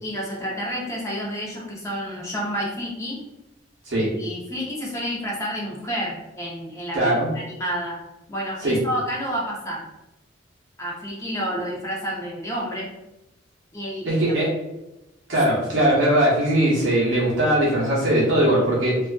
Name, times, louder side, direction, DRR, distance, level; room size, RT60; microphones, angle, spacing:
voice 1, 0.0-3.2 4.0-8.0 8.3-9.8 10.8-12.9 13.7-14.4, equal, 15° left, -4 dB, 0.6 m, -30 dB
voice 2, 6.9-7.3 8.6-8.8 14.0-14.5 15.3-19.0, right 1 dB, 70° right, -6 dB, 0.8 m, -20 dB
2.4 x 2.4 x 2.2 m, 0.94 s
head